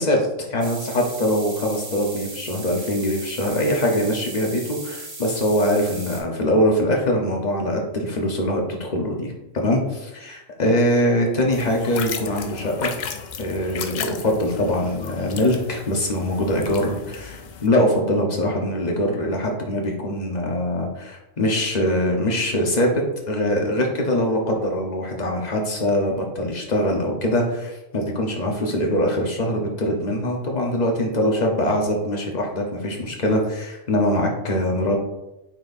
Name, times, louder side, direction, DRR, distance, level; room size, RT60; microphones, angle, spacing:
voice 1, 0.0-12.9 13.4-35.0, left 1 dB, 35° left, 0 dB, 1.1 m, -23 dB
sound 1, 0.6-6.2, right 2 dB, 55° right, 1.5 m, -37 dB
sound 2, 11.5-17.7, left 6 dB, 90° left, 0.4 m, -35 dB
8.7 x 4.3 x 2.6 m, 0.95 s
omnidirectional pair, 1.4 m